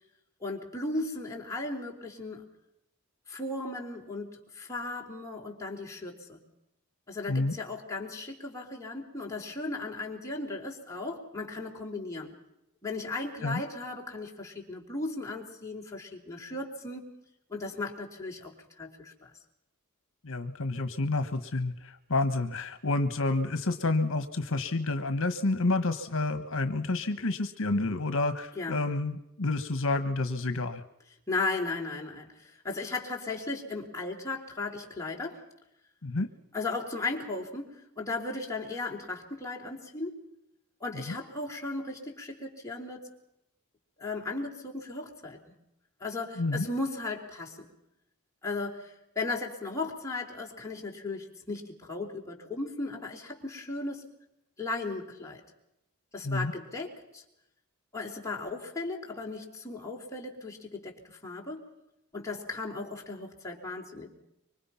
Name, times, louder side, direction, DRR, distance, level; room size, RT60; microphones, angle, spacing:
voice 1, 0.4-2.5 3.3-6.4 7.1-12.3 12.8-17.0 17.5-19.3 28.6-28.8 31.3-35.4 36.5-40.2 40.8-43.0 44.0-45.5 46.0-47.7 48.4-54.1 54.6-55.4 56.1-57.2 57.9-61.6 62.1-64.1, left 3 dB, 15° left, -1 dB, 3.9 m, -36 dB
voice 2, 20.2-30.8 36.0-36.3 40.9-41.2 46.4-46.7 56.2-56.5, left 2 dB, 65° left, 10 dB, 1.4 m, -29 dB
26.0 x 24.5 x 5.8 m, 0.85 s
head